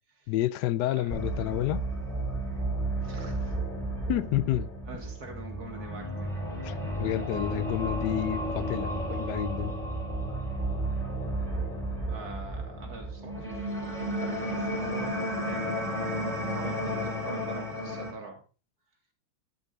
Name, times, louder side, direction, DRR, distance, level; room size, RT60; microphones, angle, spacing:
voice 1, 0.3-1.8 4.1-4.7 6.6-9.7, left 15 dB, 80° left, 0.9 m, -30 dB
sound 1, 1.1-18.1, right 1 dB, ahead, 3.7 m, -32 dB
voice 2, 3.0-3.6 4.9-6.4 12.1-18.4, right 3 dB, 45° right, 2.7 m, -45 dB
10.5 x 7.1 x 3.9 m
omnidirectional pair, 2.4 m